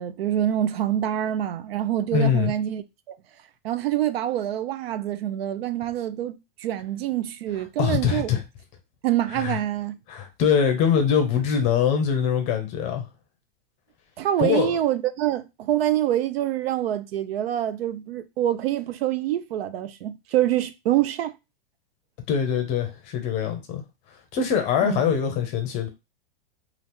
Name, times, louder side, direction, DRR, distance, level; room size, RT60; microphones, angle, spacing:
voice 1, 0.0-3.2 3.6-8.3 9.0-10.0 14.2-21.3 24.8-25.0, right 12 dB, 85° right, 0.5 m, -26 dB
voice 2, 2.1-2.5 7.8-8.4 9.3-9.6 10.1-13.1 14.4-14.8 22.3-23.8 24.3-25.9, left 7 dB, 25° left, 0.6 m, -23 dB
2.8 x 2.4 x 3.5 m
supercardioid pair, 160°, 29 cm